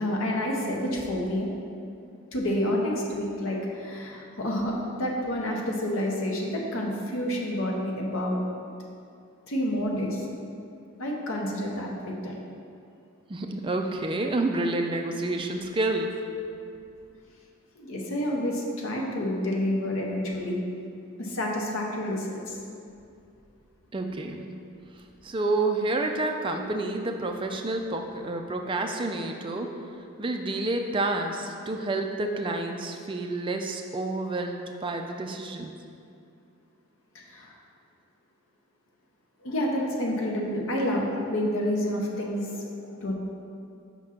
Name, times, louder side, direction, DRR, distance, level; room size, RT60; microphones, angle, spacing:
voice 1, 0.0-1.5 2.3-8.4 9.5-10.2 11.0-11.9 12.2-12.3 17.8-20.6 21.2-22.6 37.3-37.5 39.4-43.1, left 1 dB, 70° left, -1 dB, 0.9 m, -29 dB
voice 2, 13.3-16.2 23.9-24.5 24.9-29.7 30.2-35.7, right 2 dB, 20° right, 4 dB, 0.3 m, -29 dB
5.3 x 3.7 x 5.8 m, 2.5 s
head